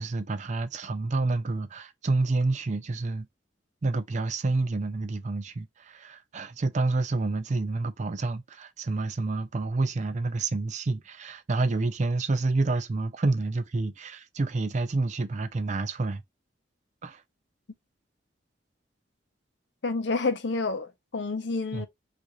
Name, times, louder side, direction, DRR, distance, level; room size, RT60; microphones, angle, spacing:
voice 1, 0.0-3.3 3.8-16.2 17.0-17.2 21.7-21.9, right 3 dB, 40° right, 0.4 m, -28 dB
voice 2, 19.8-21.9, left 3 dB, 70° left, 0.6 m, -29 dB
3.6 x 2.5 x 2.9 m
head